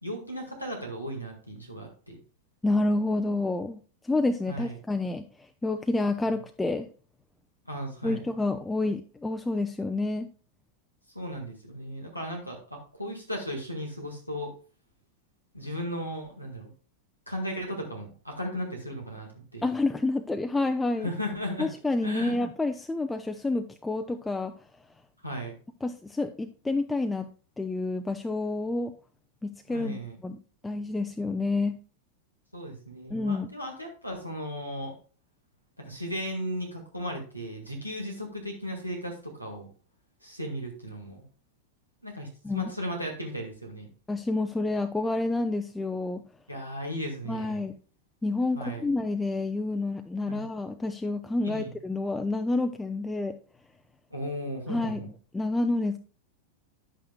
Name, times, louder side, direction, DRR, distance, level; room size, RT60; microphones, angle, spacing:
voice 1, 0.0-2.2 4.5-4.8 6.3-6.4 7.7-8.3 11.1-14.5 15.5-16.7 17.3-19.7 21.0-21.7 22.0-22.4 25.2-25.6 29.7-30.2 32.5-34.9 35.8-39.7 40.2-41.2 42.0-43.9 46.5-47.6 48.5-48.9 50.3-50.5 51.4-51.7 54.1-55.1, equal, 90° right, 0 dB, 1.8 m, -36 dB
voice 2, 2.6-6.9 8.0-10.3 19.6-21.1 21.6-24.5 25.8-27.3 27.6-28.9 29.4-30.4 30.6-31.8 33.1-33.5 42.4-42.7 44.1-46.2 47.3-47.7 48.2-53.4 54.7-55.0 55.3-56.0, left 2 dB, 10° left, 6 dB, 0.5 m, -29 dB
10.5 x 8.5 x 2.3 m, 0.37 s
figure-of-eight pair, 90°, 0 cm